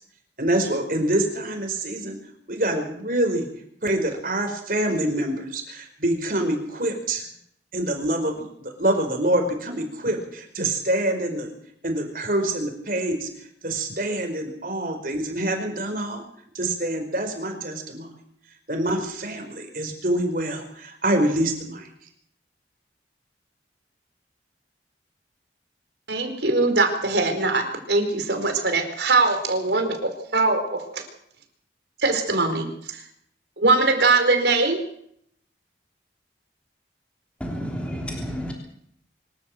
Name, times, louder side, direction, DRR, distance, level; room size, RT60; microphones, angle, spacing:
voice 1, 0.4-2.2 2.5-3.4 3.8-7.2 7.7-11.5 11.8-13.3 13.6-16.2 16.5-18.1 18.7-21.9, right 1 dB, 50° right, 4 dB, 5.0 m, -26 dB
voice 2, 26.1-31.0 32.0-32.7 33.6-34.8, right 3 dB, 70° right, 6 dB, 4.5 m, -21 dB
voice 3, 37.4-38.5, equal, 5° left, 0 dB, 3.3 m, -30 dB
25.5 x 13.0 x 7.9 m, 0.69 s
head